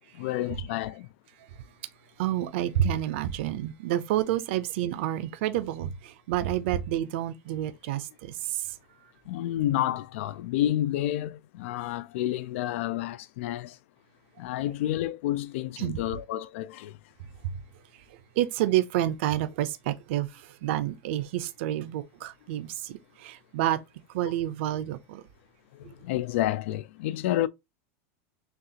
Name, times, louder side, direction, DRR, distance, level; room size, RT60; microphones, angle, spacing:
voice 1, 0.1-1.1 9.3-13.8 14.4-17.0 25.7-27.5, left 13 dB, 60° left, 0.4 m, -30 dB
voice 2, 2.2-8.7 15.8-16.0 17.4-17.5 18.4-23.8 24.1-25.2, right 12 dB, 55° right, 0.5 m, -29 dB
6.4 x 2.4 x 2.8 m
supercardioid pair, 180°, 8 cm